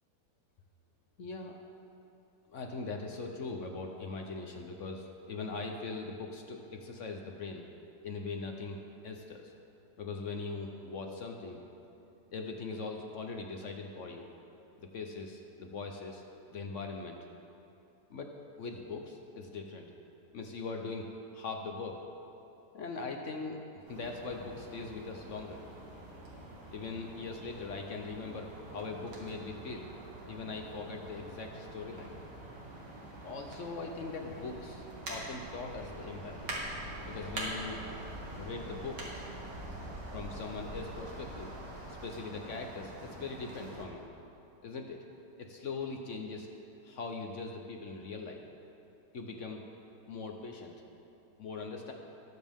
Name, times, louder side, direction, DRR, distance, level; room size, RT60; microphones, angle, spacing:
voice 1, 1.2-1.5 2.5-7.6 8.0-8.8 9.0-9.5 10.0-11.6 12.3-14.3 14.8-16.2 16.5-17.2 18.1-19.9 20.3-22.0 22.7-25.6 26.7-29.9 30.3-32.2 33.2-36.5 37.1-37.8 38.3-39.2 40.1-41.5 41.9-44.1 44.6-45.0 45.4-46.5 46.8-48.4 49.1-49.6 50.1-50.7 51.4-51.9, left 4 dB, 55° left, 3 dB, 0.9 m, -41 dB
sound 1, 23.9-43.8, right 1 dB, 75° right, 2.4 m, -44 dB
19.5 x 7.4 x 3.6 m, 2.8 s
omnidirectional pair, 1.9 m